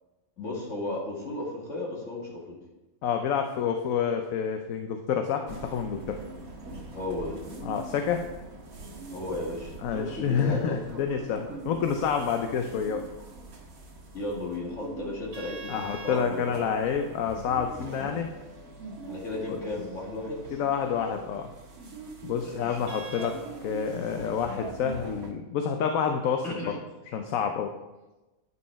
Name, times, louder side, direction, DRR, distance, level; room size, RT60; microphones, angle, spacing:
voice 1, 0.4-2.6 6.9-7.4 9.1-10.8 14.1-16.7 19.1-20.4 22.4-22.8 26.4-26.8, left 2 dB, 60° left, -2 dB, 2.2 m, -34 dB
voice 2, 3.0-6.2 7.6-8.2 9.8-13.0 15.7-18.3 19.5-19.6 20.5-21.5 22.2-26.6 27.1-27.7, left 7 dB, 75° left, 5 dB, 1.1 m, -28 dB
sound 1, 5.5-25.3, right 2 dB, 80° right, 1.9 m, -43 dB
9.6 x 5.5 x 4.5 m, 1.1 s
omnidirectional pair, 1.5 m